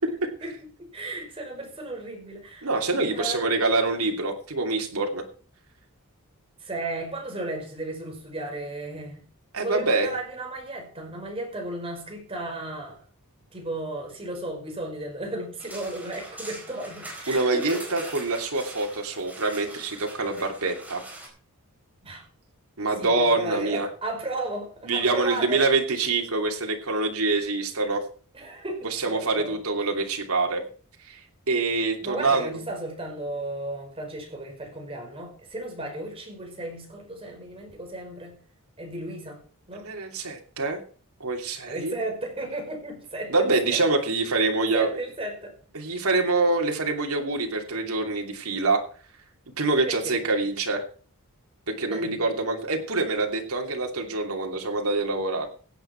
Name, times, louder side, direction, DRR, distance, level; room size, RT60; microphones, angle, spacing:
voice 1, 0.9-2.7 3.1-3.5 6.6-9.3 9.6-13.0 13.5-17.8 22.0-22.2 22.9-25.6 28.3-29.6 32.0-38.4 38.8-39.4 39.7-39.9 41.7-43.8 44.4-45.5 49.8-50.2 51.9-52.2, right 2 dB, 25° right, 2 dB, 5.3 m, -34 dB
voice 2, 2.6-5.2 9.5-10.1 17.3-21.0 22.8-23.9 24.9-28.0 28.9-30.6 31.1-32.6 39.7-40.8 41.2-41.9 43.3-44.9 45.7-48.8 49.6-50.8 51.7-55.5, right 3 dB, 80° right, 2 dB, 2.9 m, -25 dB
sound 1, 15.6-21.3, right 1 dB, 5° right, 4.4 m, -42 dB
16.0 x 9.5 x 4.5 m, 0.42 s
head